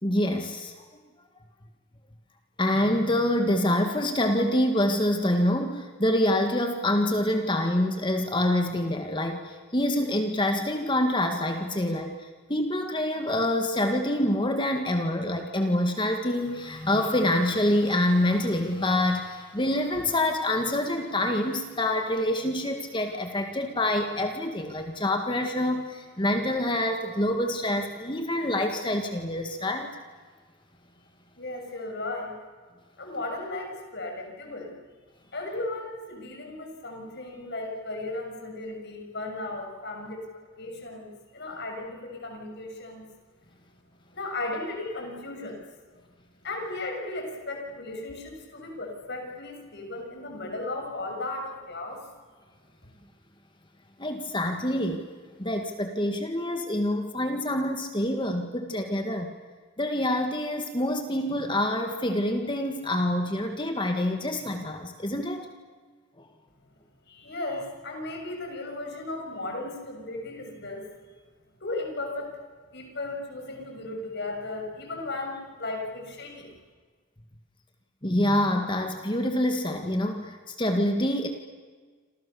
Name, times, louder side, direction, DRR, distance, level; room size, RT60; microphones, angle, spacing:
voice 1, 0.0-0.7 2.6-30.0 54.0-55.0 55.4-59.3 59.8-65.5 66.2-66.3 78.0-81.3, left 1 dB, 25° left, 5 dB, 1.9 m, -26 dB
voice 2, 31.4-32.4 33.0-34.8 35.3-40.3 40.6-43.1 44.1-45.6 46.4-52.0 67.1-70.9 71.6-72.4 72.7-76.5, left 2 dB, 55° left, 2 dB, 6.9 m, -35 dB
28.5 x 27.5 x 7.1 m, 1.5 s
head